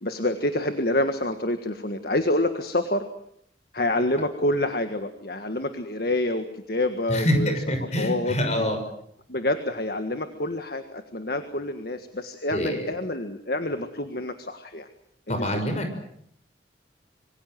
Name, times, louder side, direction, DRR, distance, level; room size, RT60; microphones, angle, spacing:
voice 1, 0.0-3.1 3.7-7.5 8.0-8.7 9.3-14.9 15.3-15.5, left 1 dB, 55° left, 8 dB, 1.7 m, -27 dB
voice 2, 7.7-8.8 12.5-12.9 15.3-16.0, equal, 35° left, 6 dB, 6.1 m, -26 dB
26.0 x 24.0 x 7.7 m, 0.71 s
head